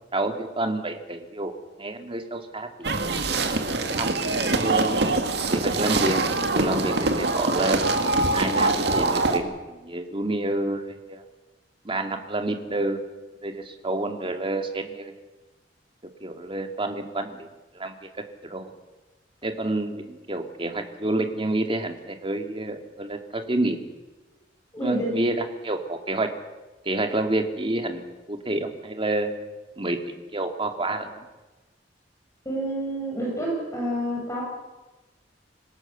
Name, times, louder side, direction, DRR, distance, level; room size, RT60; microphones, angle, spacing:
voice 1, 0.1-1.5 1.8-2.9 3.8-5.0 5.5-7.8 8.3-10.8 11.1-11.2 11.8-13.0 13.4-15.1 16.2-17.5 17.7-17.9 18.4-18.7 19.4-23.8 24.8-26.3 26.8-28.0 28.3-29.3 29.8-30.0 30.3-31.2, right 2 dB, 30° right, 5 dB, 2.2 m, -28 dB
sound 1, 2.8-9.4, right 2 dB, 65° right, 2.1 m, -24 dB
voice 2, 24.7-25.1 32.5-34.4, right 1 dB, 20° left, -3 dB, 6.9 m, -28 dB
26.5 x 17.5 x 6.9 m, 1.2 s
head